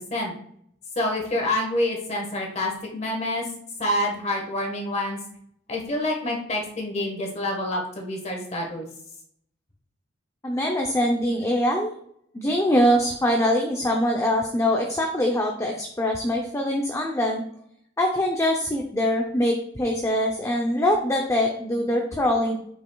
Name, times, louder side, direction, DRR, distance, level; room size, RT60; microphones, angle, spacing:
voice 1, 0.9-3.5 3.8-5.2 5.7-8.9, left 1 dB, 35° left, 1 dB, 1.4 m, -27 dB
voice 2, 10.4-11.9 12.3-17.4 18.0-22.6, equal, 15° left, 1 dB, 0.6 m, -23 dB
8.2 x 5.3 x 2.3 m, 0.68 s
head